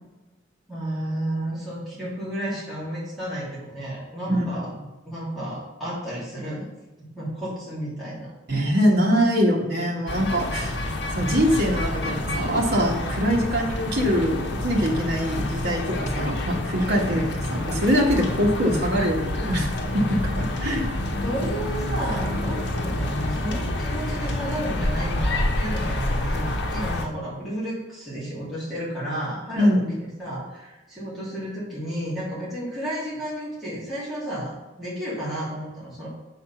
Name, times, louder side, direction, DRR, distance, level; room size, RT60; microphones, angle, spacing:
voice 1, 0.7-4.7 5.0-6.7 7.0-8.3 16.9-17.1 21.2-34.5 34.8-36.1, right 1 dB, ahead, -10 dB, 2.7 m, -32 dB
voice 2, 8.5-10.8 11.2-17.2 17.5-19.7 19.9-20.9 29.6-29.9, equal, 60° right, 0 dB, 1.6 m, -23 dB
sound 1, 10.1-27.1, left 1 dB, 65° left, 1.0 m, -28 dB
7.8 x 4.1 x 5.8 m, 1.1 s
head